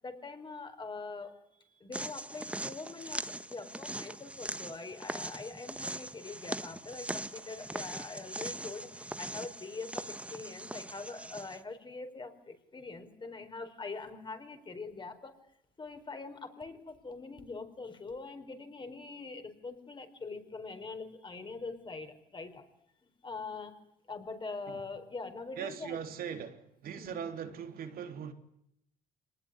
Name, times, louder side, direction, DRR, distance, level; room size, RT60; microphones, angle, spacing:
voice 1, 0.0-1.4 1.7-15.4 15.8-22.6 23.0-23.7 24.1-26.0 27.0-27.2, left 3 dB, 30° left, 4.7 m, -43 dB
sound 1, 1.9-11.6, right 1 dB, 5° right, 1.2 m, -41 dB
voice 2, 25.6-28.3, right 7 dB, 65° right, 3.4 m, -40 dB
25.5 x 19.5 x 9.9 m
cardioid pair, 90°, 17 cm